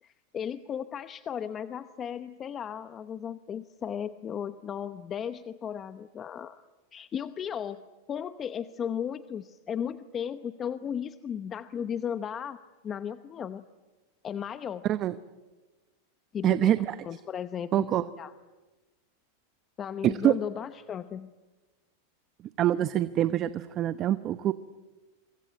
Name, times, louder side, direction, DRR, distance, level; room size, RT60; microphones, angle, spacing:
voice 1, 0.0-6.6 6.9-7.8 8.1-12.6 12.8-13.6 14.2-14.8 16.3-17.9 18.2-18.3 19.8-21.3, left 8 dB, 25° left, 12 dB, 0.9 m, -35 dB
voice 2, 14.8-15.2 16.4-16.9 17.7-18.0 20.0-20.3 22.6-24.5, right 12 dB, 35° right, 13 dB, 0.8 m, -25 dB
26.5 x 25.0 x 8.8 m, 1.2 s
supercardioid pair, 135°, 0 cm